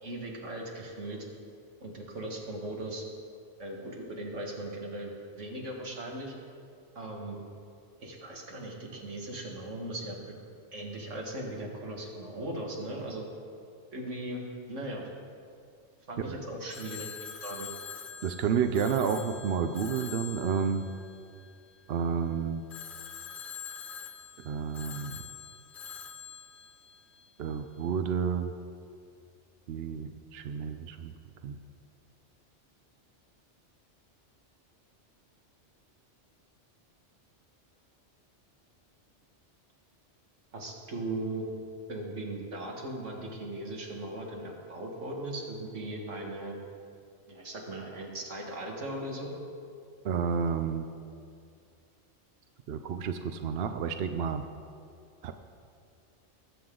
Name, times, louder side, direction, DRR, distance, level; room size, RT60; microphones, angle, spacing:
voice 1, 0.0-1.3 1.8-3.0 3.6-6.3 7.0-7.4 8.0-10.3 10.7-13.3 13.9-15.1 16.1-17.7 40.5-41.5 41.9-46.6 47.3-49.3, right 1 dB, 85° right, -1 dB, 2.1 m, -38 dB
Telephone, 16.7-21.9 22.7-27.6, left 7 dB, 50° left, 0.8 m, -45 dB
voice 2, 18.2-20.9 21.9-22.6 24.4-25.2 27.4-28.5 29.7-31.1 31.4-31.6 50.0-50.9 52.7-54.4 55.2-55.3, right 7 dB, 65° right, 8 dB, 0.8 m, -30 dB
20.0 x 7.8 x 3.8 m, 2.3 s
omnidirectional pair, 1.2 m